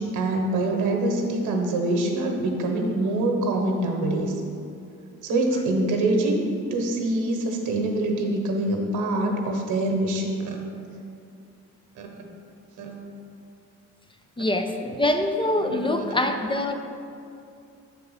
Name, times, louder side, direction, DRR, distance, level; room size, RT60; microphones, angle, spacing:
voice 1, 0.0-4.3 5.2-6.4 6.7-10.6 12.0-12.1 12.8-13.1 15.6-15.9, right 2 dB, 90° right, 2 dB, 1.0 m, -25 dB
voice 2, 14.4-16.8, left 1 dB, 15° left, 5 dB, 0.5 m, -24 dB
7.8 x 3.9 x 5.4 m, 2.5 s
cardioid pair, 90°, 30 cm